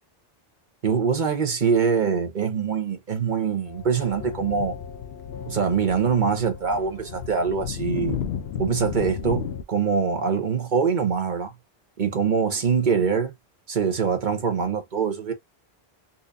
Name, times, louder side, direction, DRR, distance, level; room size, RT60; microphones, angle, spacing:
voice 1, 0.8-4.7 5.5-8.2 8.6-11.5 12.0-13.3 13.7-15.3, right 6 dB, 50° right, 1.0 m, -24 dB
sound 1, 3.7-9.6, left 8 dB, 85° left, 0.9 m, -34 dB
4.2 x 2.6 x 2.5 m
omnidirectional pair, 1.0 m